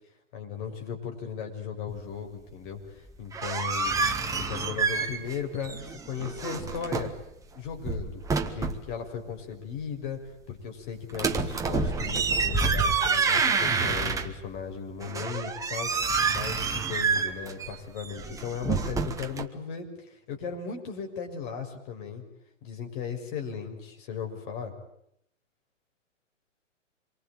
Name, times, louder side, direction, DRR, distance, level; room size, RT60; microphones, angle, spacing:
voice 1, 0.3-7.1 7.5-10.2 10.5-22.2 22.6-24.7, left 6 dB, 40° left, 3 dB, 6.7 m, -37 dB
sound 1, 3.1-5.4 5.6-7.2 7.7-8.9 11.1-14.6 15.0-19.4, right 4 dB, 10° right, 1.5 m, -28 dB
27.0 x 23.5 x 9.0 m, 0.75 s
hypercardioid pair, 130°, 38 cm